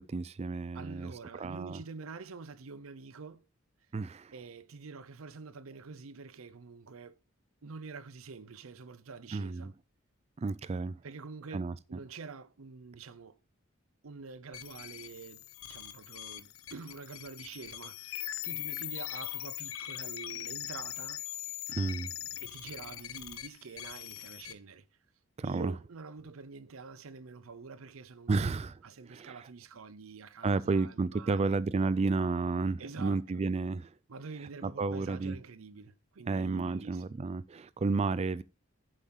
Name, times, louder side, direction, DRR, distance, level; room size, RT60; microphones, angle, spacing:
voice 1, 0.0-1.8 3.9-4.3 9.3-9.7 10.4-10.9 11.5-11.7 21.7-22.1 25.4-25.7 28.3-29.5 30.4-33.9 34.6-35.4 36.3-38.4, right 3 dB, 30° right, 0.3 m, -32 dB
voice 2, 0.7-3.5 4.3-7.2 7.6-9.7 11.0-13.4 14.0-21.2 22.4-24.9 25.4-28.5 28.8-31.6 32.8-33.2 34.1-37.0, right 4 dB, 85° right, 0.7 m, -47 dB
sound 1, 14.5-24.5, left 14 dB, 80° left, 0.8 m, -41 dB
9.1 x 7.3 x 3.9 m
head